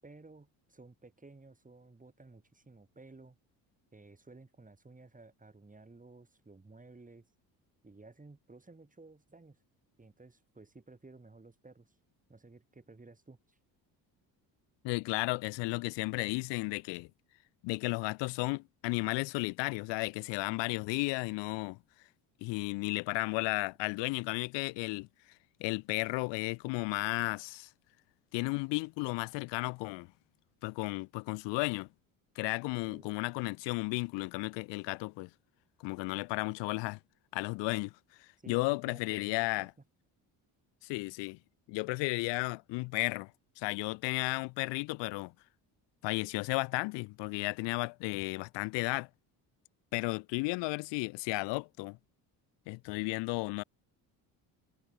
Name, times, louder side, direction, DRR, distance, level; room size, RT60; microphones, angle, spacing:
voice 1, 0.0-3.4 3.9-7.3 7.8-9.6 10.0-12.0 12.3-13.6 32.9-33.1 38.4-39.7, right 3 dB, 20° right, 6.9 m, -55 dB
voice 2, 14.8-17.1 17.6-21.8 22.4-25.1 25.6-27.7 28.3-30.1 30.6-31.9 32.4-35.3 35.8-37.0 37.3-37.9 38.2-39.7 40.8-41.4 41.7-43.3 43.6-45.3 46.0-49.1 49.9-52.0 52.7-53.6, left 26 dB, 85° left, 0.8 m, -34 dB
supercardioid pair, 80°, 42 cm